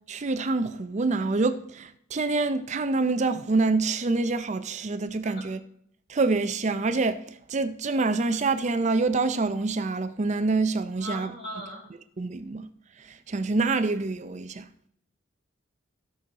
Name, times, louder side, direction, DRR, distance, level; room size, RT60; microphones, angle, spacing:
voice 1, 0.1-5.6 6.1-11.3 12.2-12.7 13.0-14.7, right 3 dB, 35° right, 0.5 m, -26 dB
voice 2, 11.0-11.8, equal, 50° left, 4.1 m, -38 dB
15.0 x 6.2 x 4.0 m
head